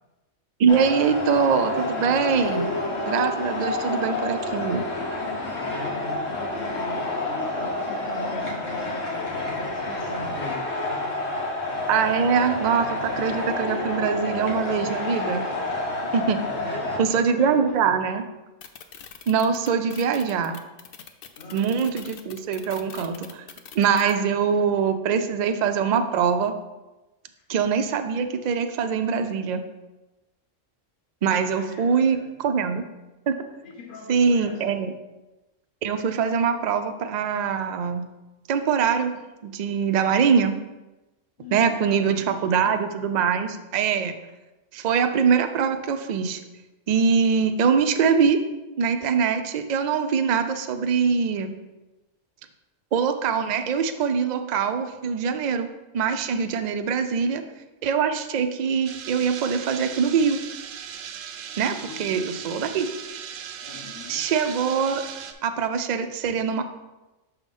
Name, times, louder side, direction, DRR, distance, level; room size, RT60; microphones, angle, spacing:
voice 1, 0.6-2.7 3.1-4.8 11.9-15.5 16.1-16.4 17.0-18.2 19.3-20.6 21.5-23.4 23.7-26.5 27.5-29.6 31.2-32.8 33.3-33.4 34.1-34.9 35.8-38.1 38.5-39.1 39.4-40.5 41.5-44.1 44.7-46.4 46.9-48.4 48.8-51.5 52.9-55.7 55.9-57.4 57.8-60.4 61.6-62.9 64.1-65.0 65.4-66.6, right 6 dB, 70° right, 7 dB, 0.4 m, -23 dB
sound 1, 0.7-17.0, left 2 dB, 80° left, 1.5 m, -29 dB
voice 2, 5.6-11.3 16.4-17.9 21.4-21.7 31.5-32.3 33.6-34.8 41.4-42.8 57.1-57.3 61.7-62.4 63.6-64.3, left 2 dB, 45° left, 0 dB, 1.1 m, -41 dB
sound 2, 18.6-24.1, left 8 dB, 60° left, 0.6 m, -43 dB
sound 3, 58.8-65.3, right 8 dB, 85° right, 0.9 m, -38 dB
6.3 x 3.5 x 5.3 m, 1.1 s
omnidirectional pair, 1.3 m